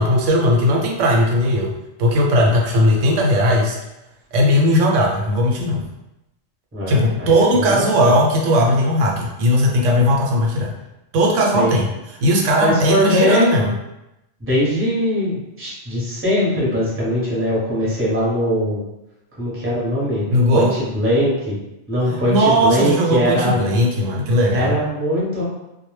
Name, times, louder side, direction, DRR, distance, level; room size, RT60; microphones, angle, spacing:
voice 1, 0.0-1.7 2.0-3.8 4.3-5.8 6.9-10.7 11.1-11.9 12.2-13.7 20.3-20.7 22.1-24.7, equal, 75° right, -1 dB, 0.9 m, -17 dB
voice 2, 6.7-8.1 11.5-11.7 12.6-13.5 14.4-18.8 19.4-21.6 21.9-23.6 24.5-25.4, equal, 15° right, -8 dB, 0.7 m, -21 dB
2.1 x 2.0 x 3.1 m, 0.93 s
omnidirectional pair, 1.3 m